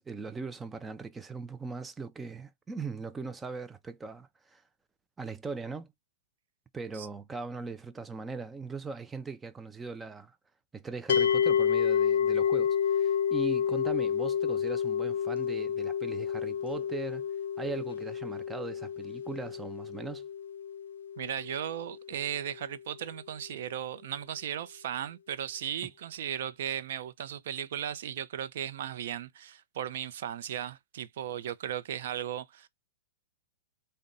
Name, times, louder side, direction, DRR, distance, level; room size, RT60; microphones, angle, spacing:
voice 1, 0.0-4.6 5.2-5.9 6.7-10.4 10.7-17.3 17.6-20.3, right 4 dB, 10° right, 0.4 m, -39 dB
sound 1, 11.1-22.3, left 8 dB, 90° left, 0.3 m, -29 dB
voice 2, 21.2-32.7, right 10 dB, 60° right, 0.5 m, -36 dB
4.0 x 2.2 x 3.7 m
hypercardioid pair, 160°, 0 cm